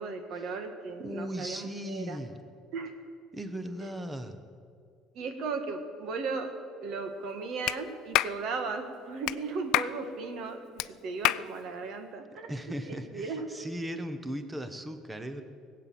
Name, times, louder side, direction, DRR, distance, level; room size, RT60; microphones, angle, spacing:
voice 1, 0.0-2.2 2.7-2.9 3.8-3.9 5.1-6.5 6.8-12.5 12.9-13.4, right 4 dB, 55° right, 7 dB, 1.6 m, -36 dB
voice 2, 1.0-2.4 3.3-4.4 12.5-15.4, equal, 10° right, 9 dB, 1.0 m, -37 dB
Clapping, 7.7-7.8 8.1-8.4 9.3-9.4 9.7-9.9 10.8-10.9 11.2-11.5, left 16 dB, 70° left, 0.3 m, -26 dB
19.0 x 8.4 x 7.6 m, 2.2 s
cardioid pair, 140°, 0 cm